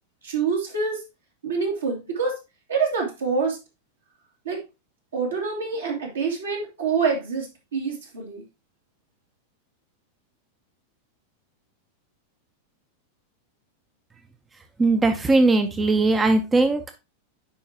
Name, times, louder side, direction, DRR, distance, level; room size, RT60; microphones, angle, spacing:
voice 1, 0.2-1.0 1.4-2.4 2.7-3.6 4.4-4.6 5.1-8.4, right 5 dB, 70° right, 0 dB, 2.5 m, -26 dB
voice 2, 14.8-16.9, right 2 dB, 15° right, 7 dB, 0.7 m, -19 dB
9.7 x 4.7 x 2.8 m, 0.25 s
figure-of-eight pair, 90°, 0 cm